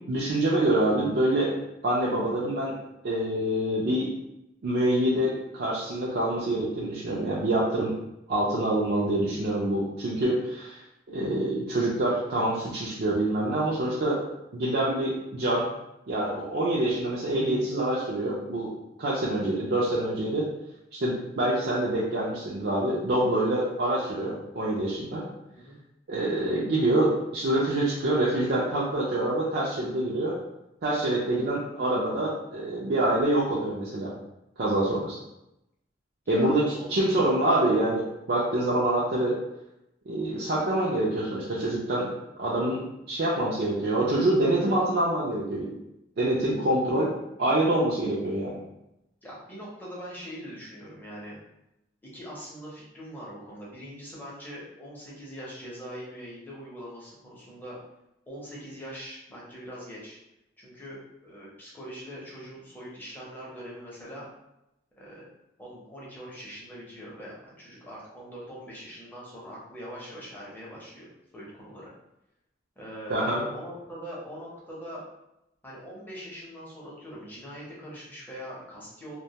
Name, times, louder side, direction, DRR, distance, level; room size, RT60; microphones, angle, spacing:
voice 1, 0.1-1.5 1.8-2.7 3.0-4.1 4.6-7.9 8.3-10.8 11.1-14.2 14.5-15.7 16.1-18.7 19.0-20.5 20.9-25.2 26.1-30.3 30.8-34.1 34.6-35.2 36.3-39.4 40.1-42.1 42.4-45.7 46.2-47.1 47.4-48.6 73.1-73.4, right 1 dB, 55° right, -6 dB, 0.4 m, -26 dB
voice 2, 8.8-9.1 25.5-25.8 34.7-35.0 36.2-37.1 49.2-51.4 52.1-57.8 58.3-60.2 60.6-64.3 65.0-65.3 65.6-71.1 71.3-71.9 72.8-75.0 75.6-79.2, equal, 10° left, -6 dB, 0.6 m, -42 dB
2.2 x 2.1 x 2.8 m, 0.88 s
head